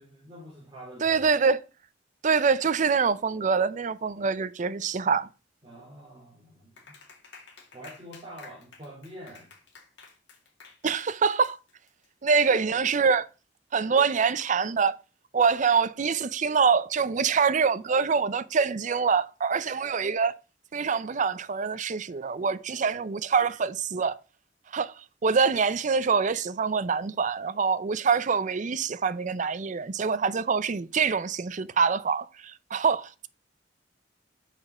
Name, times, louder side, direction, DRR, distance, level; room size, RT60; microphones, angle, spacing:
voice 1, 0.0-1.2 5.6-7.0 7.7-9.5, equal, 25° right, 3.1 m, -46 dB
voice 2, 1.0-1.6 2.2-5.3 10.8-11.6 12.2-13.3 13.7-15.0 15.3-20.3 20.7-24.2 24.7-24.9 25.2-33.3, right 5 dB, 45° right, 0.5 m, -25 dB
Clapping, 6.8-12.1, left 4 dB, 70° left, 2.1 m, -51 dB
6.5 x 6.1 x 4.9 m
head